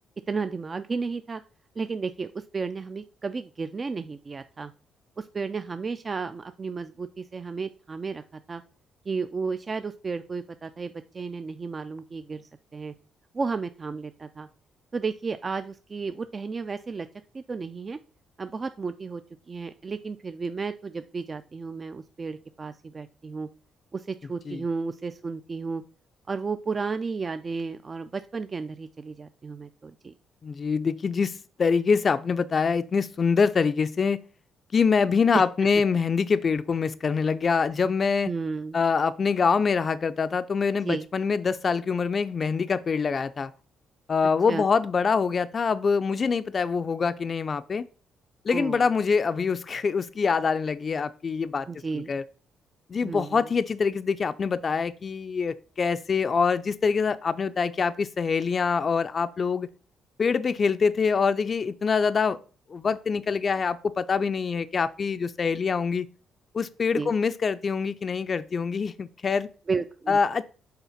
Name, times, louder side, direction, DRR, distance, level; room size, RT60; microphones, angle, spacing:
voice 1, 0.3-1.4 1.8-4.7 5.2-8.2 8.5-8.6 9.1-12.9 13.3-14.5 14.9-17.1 17.3-18.0 18.4-19.2 19.5-23.5 23.9-25.8 26.3-30.1 38.3-38.8 40.8-41.1 44.5-44.6 48.5-48.8 51.7-52.1 53.0-53.4 66.9-67.1 69.7-70.2, right 4 dB, 35° right, 11 dB, 0.3 m, -33 dB
voice 2, 30.4-34.2 34.7-38.3 38.7-43.5 44.1-47.9 48.5-51.7 51.9-52.2 52.9-59.7 60.2-62.4 62.7-66.1 66.5-69.5 70.1-70.4, left 5 dB, 40° left, 12 dB, 0.4 m, -25 dB
5.7 x 3.8 x 5.6 m, 0.39 s
cardioid pair, 90°, 0 cm